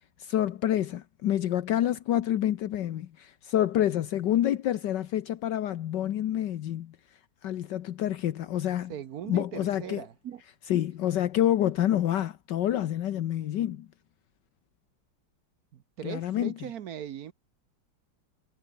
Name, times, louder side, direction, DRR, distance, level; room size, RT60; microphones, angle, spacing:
voice 1, 0.2-7.0 7.4-8.9 9.3-10.0 10.7-13.9 16.0-16.5, left 12 dB, 75° left, 1.5 m, -28 dB
voice 2, 8.9-10.4 15.7-17.3, right 10 dB, 60° right, 1.2 m, -39 dB
omnidirectional pair, 2.0 m